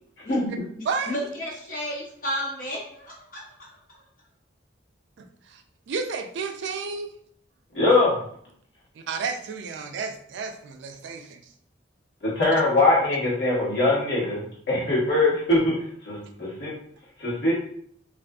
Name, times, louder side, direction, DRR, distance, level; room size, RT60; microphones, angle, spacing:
voice 1, 0.8-4.0, equal, 45° left, -6 dB, 1.1 m, -33 dB
voice 2, 5.2-5.6 5.9-7.1 9.1-11.4, right 5 dB, 70° right, 5 dB, 0.3 m, -31 dB
voice 3, 7.7-8.1 12.2-15.7 16.0-16.7 17.2-17.6, left 2 dB, 70° left, -6 dB, 1.2 m, -22 dB
2.5 x 2.4 x 2.2 m, 0.63 s
head